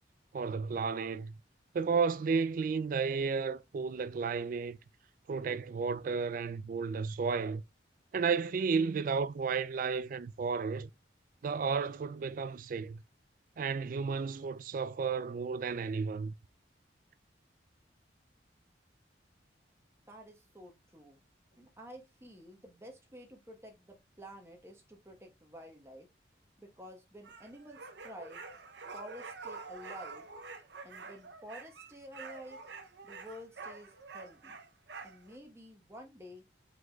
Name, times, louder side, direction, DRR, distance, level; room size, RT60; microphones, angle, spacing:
voice 1, 0.3-1.3 1.7-4.8 5.3-7.6 8.1-10.9 11.4-13.0 13.6-16.3, right 5 dB, 45° right, 0.3 m, -32 dB
voice 2, 20.1-21.2 21.6-26.1 26.6-28.4 28.9-30.3 30.8-32.6 33.0-34.6 35.0-36.4, equal, 15° right, 1.1 m, -50 dB
sound 1, 27.2-35.4, right 4 dB, 70° right, 0.7 m, -47 dB
4.7 x 3.9 x 2.3 m
head